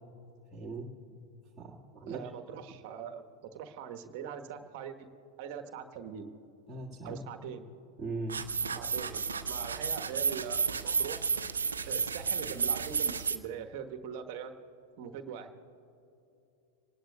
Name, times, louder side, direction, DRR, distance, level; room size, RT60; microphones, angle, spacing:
voice 1, 0.5-0.9 1.6-2.2 6.7-7.2 8.0-8.5, right 3 dB, 10° right, -6 dB, 1.9 m, -39 dB
voice 2, 2.1-3.2 3.5-5.1 5.4-6.3 7.0-7.7 8.7-11.2 11.9-14.6 15.0-15.5, right 7 dB, 45° right, 6 dB, 1.2 m, -42 dB
sound 1, 8.3-13.4, right 5 dB, 70° right, 0.6 m, -32 dB
26.0 x 19.5 x 2.3 m, 2.8 s
figure-of-eight pair, 90°, 0 cm